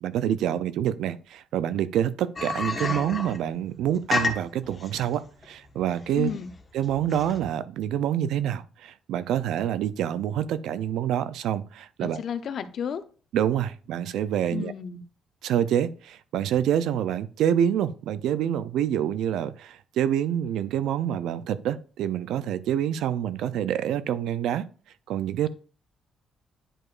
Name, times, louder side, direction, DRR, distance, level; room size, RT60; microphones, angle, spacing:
voice 1, 0.0-6.3 6.7-12.2 13.3-14.7 15.4-24.7 25.1-25.5, right 10 dB, 85° right, 0.5 m, -27 dB
sound 1, 2.4-7.5, left 3 dB, 30° left, 1.3 m, -31 dB
voice 2, 6.2-6.5 12.0-13.0 14.5-15.0, left 7 dB, 60° left, 0.7 m, -32 dB
10.0 x 4.7 x 2.5 m
cardioid pair, 90°, 0 cm